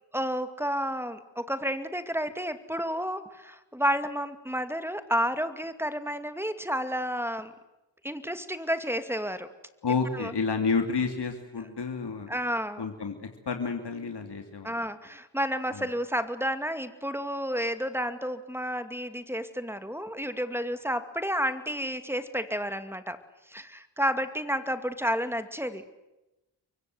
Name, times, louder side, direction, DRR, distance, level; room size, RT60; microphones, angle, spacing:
voice 1, 0.1-7.5 8.0-9.5 10.1-10.3 12.3-12.9 14.6-23.2 23.5-25.9, equal, 5° right, 10 dB, 2.4 m, -31 dB
voice 2, 9.8-12.3 12.8-14.8 15.7-15.8, left 5 dB, 65° left, 5 dB, 2.9 m, -30 dB
29.5 x 23.5 x 8.0 m, 0.98 s
wide cardioid pair, 70°, 43 cm